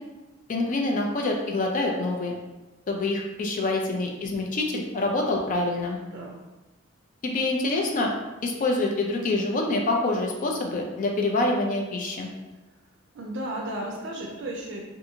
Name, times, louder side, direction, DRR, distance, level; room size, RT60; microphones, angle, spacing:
voice 1, 0.5-2.3 2.9-6.0 7.2-8.1 8.4-12.3, left 2 dB, 40° left, 1 dB, 0.4 m, -26 dB
voice 2, 13.1-14.8, right 1 dB, 65° right, -1 dB, 0.4 m, -34 dB
2.7 x 2.4 x 2.6 m, 1.1 s
head